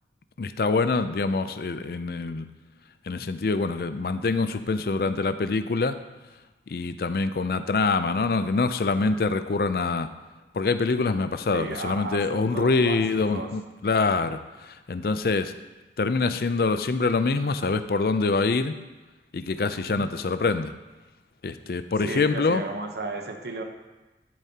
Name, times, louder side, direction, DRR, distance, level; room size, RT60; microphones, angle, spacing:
voice 1, 0.4-2.5 3.1-6.0 6.7-10.1 10.5-15.5 16.0-18.8 19.3-20.7 21.4-22.6, left 3 dB, 55° left, 11 dB, 0.4 m, -25 dB
voice 2, 11.5-13.5 19.7-20.0 22.0-23.6, right 2 dB, 70° right, 4 dB, 0.9 m, -34 dB
11.5 x 7.2 x 2.9 m, 1.1 s
head